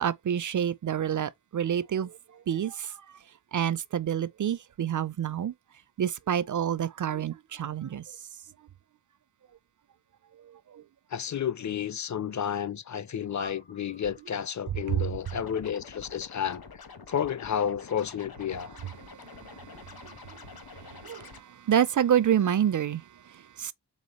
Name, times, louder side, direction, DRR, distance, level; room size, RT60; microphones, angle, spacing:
voice 1, 0.0-2.2 2.5-3.0 3.5-5.5 6.0-8.0 10.5-10.8 14.9-15.1 19.0-23.7, right 9 dB, 50° right, 0.5 m, -28 dB
voice 2, 11.1-16.6 17.1-18.7, left 8 dB, 45° left, 0.5 m, -31 dB
sound 1, 13.4-16.1, left 2 dB, 80° left, 1.1 m, -50 dB
Scratching (performance technique), 15.2-21.4, left 5 dB, 60° left, 1.1 m, -47 dB
4.1 x 3.3 x 3.0 m
cardioid pair, 40°, 42 cm